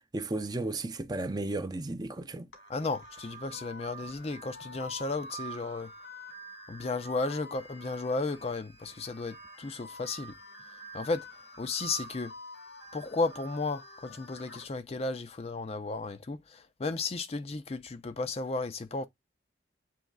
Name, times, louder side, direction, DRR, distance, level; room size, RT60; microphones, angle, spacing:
voice 1, 0.1-2.5, right 2 dB, 20° right, 0.5 m, -34 dB
sound 1, 2.5-14.7, right 1 dB, 85° left, 1.8 m, -47 dB
voice 2, 2.7-5.9 6.7-10.4 10.9-11.3 11.6-12.3 12.9-19.1, left 3 dB, 35° left, 0.4 m, -34 dB
7.5 x 3.1 x 2.3 m
head